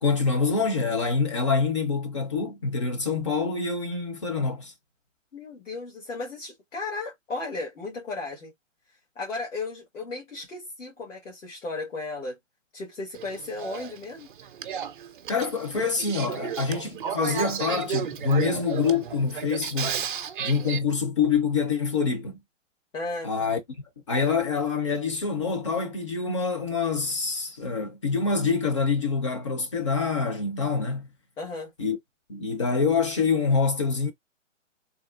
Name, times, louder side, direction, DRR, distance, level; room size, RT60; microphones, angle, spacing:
voice 1, 0.0-4.7 15.3-19.9 20.4-22.4 23.2-23.6 24.1-31.1 31.8-32.0 32.3-34.1, left 5 dB, 25° left, 0.4 m, -26 dB
voice 2, 5.3-8.5 9.1-12.4 12.7-14.3 22.9-23.5 31.4-31.7, left 3 dB, 75° left, 1.7 m, -35 dB
Male speech man speaking / Female speech woman speaking / Conversation, 13.1-20.8, right 8 dB, 45° right, 0.5 m, -33 dB
3.4 x 2.0 x 2.4 m
hypercardioid pair, 145°, 38 cm